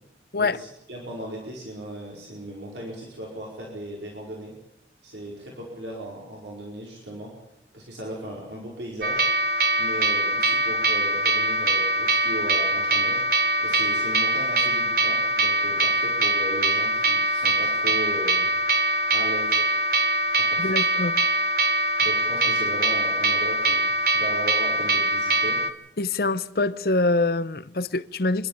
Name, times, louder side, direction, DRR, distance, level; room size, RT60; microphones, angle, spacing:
voice 1, 0.4-4.5 5.0-7.3 7.7-9.2 9.8-13.2 13.6-18.5 19.1-19.6 20.4-21.1 22.0-25.6, right 1 dB, 85° right, 4.9 m, -37 dB
sound 1, 9.0-25.7, right 2 dB, 55° right, 1.5 m, -23 dB
voice 2, 20.6-21.1 26.0-28.5, left 2 dB, 60° left, 0.8 m, -24 dB
27.0 x 12.0 x 8.8 m
head